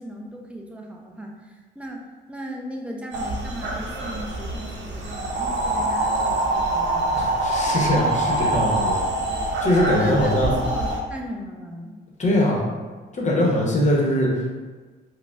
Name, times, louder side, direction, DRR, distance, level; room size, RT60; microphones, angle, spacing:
voice 1, 0.0-7.2 9.9-12.0, equal, 5° right, 0 dB, 0.5 m, -37 dB
sound 1, 3.1-11.0, right 2 dB, 65° right, 0.7 m, -25 dB
voice 2, 7.1-9.0 9.6-10.5 12.2-12.7 13.1-14.6, left 1 dB, 35° left, -2 dB, 0.9 m, -22 dB
4.7 x 2.1 x 2.4 m, 1.4 s
cardioid pair, 90°, 20 cm